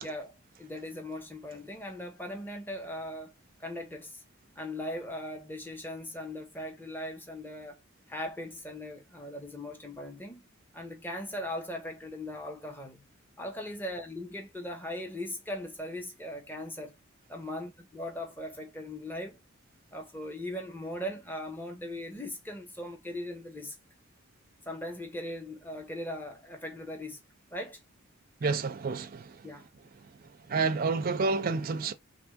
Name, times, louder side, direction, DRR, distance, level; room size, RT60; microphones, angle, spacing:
voice 1, 0.0-3.3 3.6-4.2 4.6-7.8 8.1-10.4 10.7-13.0 13.4-16.9 17.3-19.4 19.9-23.7 24.7-27.2 27.5-27.8 29.4-29.6, left 1 dB, 10° left, 0.7 m, -39 dB
voice 2, 28.4-29.3 30.5-31.9, right 4 dB, 45° right, 0.4 m, -29 dB
3.5 x 3.1 x 3.5 m
head